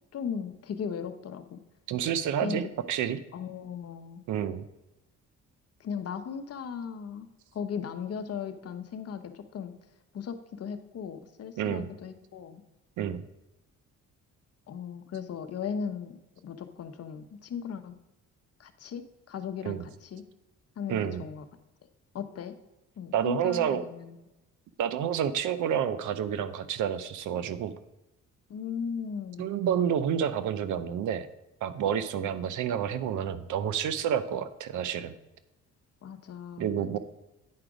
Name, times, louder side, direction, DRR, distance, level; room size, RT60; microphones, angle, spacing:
voice 1, 0.1-1.6 2.4-2.6 3.3-4.2 5.8-7.3 7.5-9.7 10.1-12.6 14.7-17.9 18.6-20.2 20.8-21.4 22.1-22.5 23.0-24.2 28.5-29.5 36.0-36.9, left 7 dB, 55° left, 9 dB, 0.9 m, -37 dB
voice 2, 1.9-3.2 4.3-4.6 11.6-11.9 13.0-13.3 19.6-19.8 20.9-21.2 23.1-23.8 24.8-27.7 29.4-31.3 31.6-35.1 36.6-37.0, right 9 dB, 80° right, 13 dB, 0.7 m, -29 dB
9.6 x 5.0 x 4.9 m, 0.98 s
cardioid pair, 90°, 30 cm